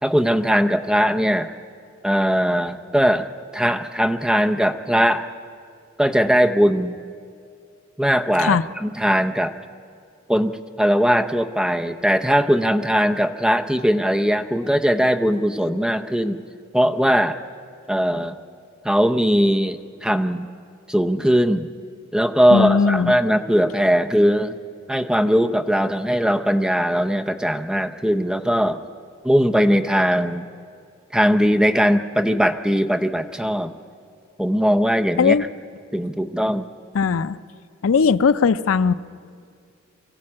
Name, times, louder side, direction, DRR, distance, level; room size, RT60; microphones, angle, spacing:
voice 1, 0.0-1.5 2.0-3.3 3.5-5.2 6.0-6.9 8.0-9.5 10.3-10.5 10.8-16.4 16.7-17.4 17.9-18.4 18.8-20.5 20.9-21.7 22.1-24.6 24.9-28.8 29.2-30.4 31.1-33.7 34.4-35.4 35.9-36.7, equal, 5° right, 6 dB, 0.6 m, -19 dB
voice 2, 22.5-23.2 35.2-35.5 36.9-37.4 37.8-38.9, left 5 dB, 85° left, 14 dB, 0.5 m, -18 dB
23.0 x 15.0 x 8.7 m, 2.3 s
head